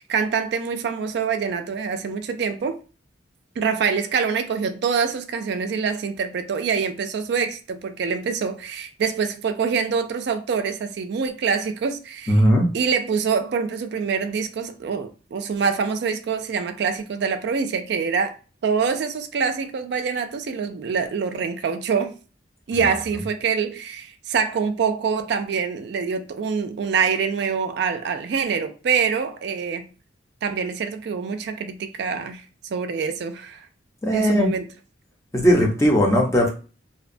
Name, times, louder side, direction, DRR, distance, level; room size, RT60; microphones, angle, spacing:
voice 1, 0.0-2.8 3.6-12.4 12.7-18.3 18.6-22.2 22.7-29.8 30.4-33.7 34.1-34.7, right 6 dB, 60° right, 0.3 m, -25 dB
voice 2, 12.3-12.7 34.0-34.5 35.3-36.5, equal, 15° left, 0.5 m, -18 dB
2.7 x 2.1 x 2.5 m
head